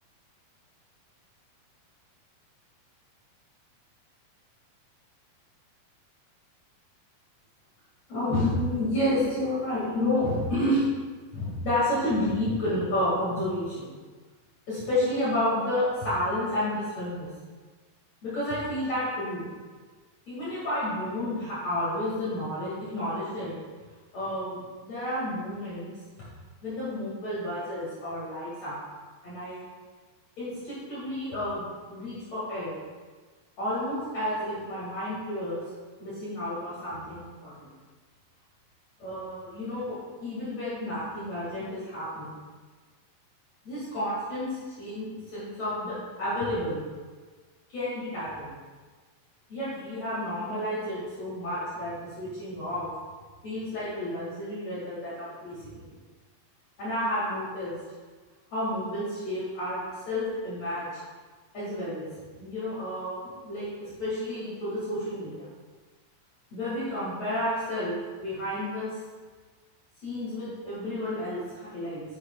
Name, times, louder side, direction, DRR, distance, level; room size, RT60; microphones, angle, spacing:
voice 1, 8.1-10.9 11.3-13.9 14.7-17.3 18.2-19.5 20.3-23.6 24.1-25.9 26.6-28.8 29.2-29.6 30.4-31.6 31.9-32.7 33.6-35.6 36.0-37.7 39.0-42.3 43.6-46.8 47.7-48.5 49.5-52.9 53.4-55.6 55.8-55.9 56.8-57.8 58.5-60.9 61.5-62.1 62.4-65.5 66.5-68.9 70.0-72.0, left 1 dB, 50° left, -10 dB, 3.2 m, -31 dB
9.7 x 7.4 x 2.4 m, 1.4 s
omnidirectional pair, 4.0 m